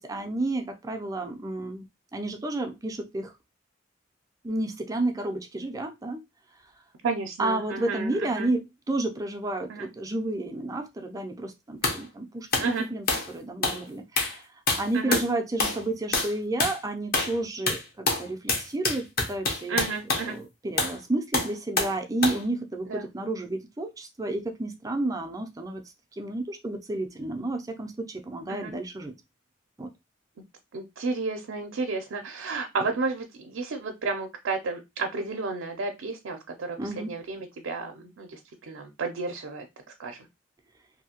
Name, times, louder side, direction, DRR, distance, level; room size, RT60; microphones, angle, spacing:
voice 1, 0.0-1.9 2.1-3.3 4.4-6.2 7.4-14.4 14.7-19.8 20.2-25.8 26.1-29.1 29.8-29.9 36.8-37.2, right 2 dB, 15° right, 0.4 m, -31 dB
voice 2, 7.0-8.5 9.7-9.9 12.6-12.9 14.9-15.2 19.7-20.4 22.9-23.0 28.5-28.7 30.7-36.8 37.1-38.4 38.7-39.6 40.0-40.2, right 4 dB, 75° right, 0.5 m, -32 dB
sound 1, 11.8-12.0 12.5-12.7 13.1-13.3 13.6-13.8 14.2-14.4 14.7-15.3 15.6-15.8 16.1-16.3 16.6-16.8 17.1-17.4 17.7-20.3 20.8-21.0 21.3-22.0 22.2-22.4, left 3 dB, 50° left, 0.8 m, -26 dB
2.7 x 2.6 x 2.8 m
head